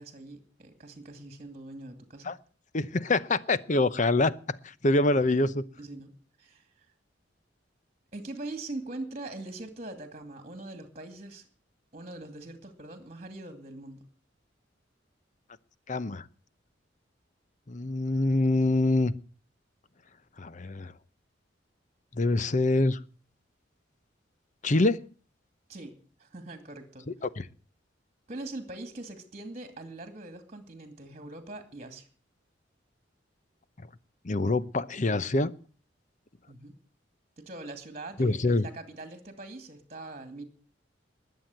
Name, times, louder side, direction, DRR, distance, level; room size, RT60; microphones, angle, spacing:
voice 1, 0.0-2.4 5.8-6.1 6.4-6.9 8.1-11.5 11.9-14.0 25.7-25.9 26.2-27.1 28.3-32.1 36.5-36.8 37.4-40.4, right 2 dB, 35° right, 8 dB, 2.4 m, -42 dB
voice 2, 2.7-4.3 4.8-5.6 15.9-16.2 17.7-19.1 20.4-20.9 22.1-23.0 24.6-25.0 27.4-27.5 34.2-35.5 38.2-38.7, left 2 dB, 40° left, 16 dB, 0.8 m, -25 dB
20.5 x 7.9 x 7.9 m, 0.41 s
head